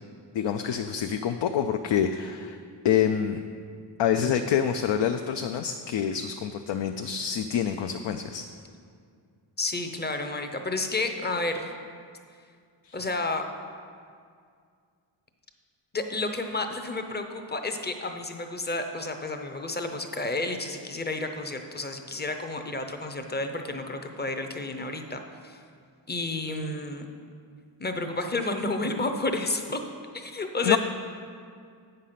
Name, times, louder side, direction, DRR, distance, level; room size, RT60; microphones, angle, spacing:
voice 1, 0.3-2.6 2.8-3.4 4.0-8.5 12.8-13.0 30.6-30.8, left 8 dB, 70° left, 7 dB, 0.5 m, -26 dB
voice 2, 9.6-11.7 12.9-13.4 15.9-25.6 26.1-27.1 27.8-29.8 30.1-30.8, left 2 dB, 20° left, 6 dB, 0.6 m, -31 dB
8.5 x 6.7 x 5.7 m, 2.2 s
wide cardioid pair, 130°, 46 cm